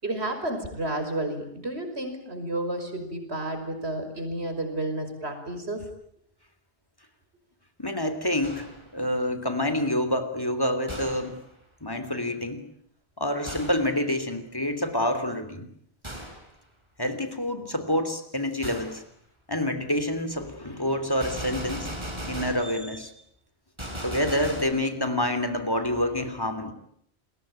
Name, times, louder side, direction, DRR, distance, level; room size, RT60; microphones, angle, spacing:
voice 1, 0.0-5.9, right 1 dB, 90° right, 7 dB, 5.9 m, -31 dB
voice 2, 7.8-11.4 11.8-12.7 13.2-15.7 17.0-19.0 19.5-21.9 22.3-23.1 24.0-26.7, left 1 dB, 20° left, 10 dB, 3.2 m, -27 dB
Gunshot gunfire, 8.4-8.9 10.9-11.4 13.5-13.9 16.0-16.5 18.6-19.0 21.2-22.7 23.8-24.6, equal, 25° right, 6.0 m, -37 dB
29.0 x 22.0 x 9.0 m, 0.71 s
omnidirectional pair, 1.1 m